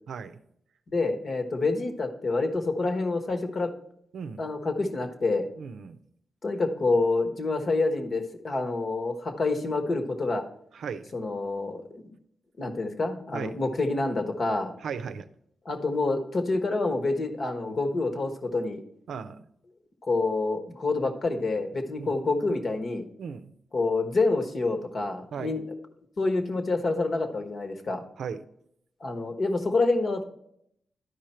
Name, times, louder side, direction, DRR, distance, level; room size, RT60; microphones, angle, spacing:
voice 1, 0.1-0.4 4.1-4.4 5.6-6.0 10.7-11.0 13.3-13.5 14.8-15.3 19.1-19.4 22.0-22.1 23.2-23.5 25.3-25.6 28.2-28.4, right 6 dB, 85° right, 10 dB, 0.5 m, -36 dB
voice 2, 0.9-3.7 4.4-5.5 6.4-10.4 11.1-11.8 12.6-14.7 15.6-18.8 20.0-23.0 23.7-25.7 26.2-28.0 29.0-30.2, left 3 dB, 55° left, 6 dB, 1.2 m, -27 dB
11.5 x 5.0 x 4.4 m, 0.72 s
cardioid pair, 85°, 0 cm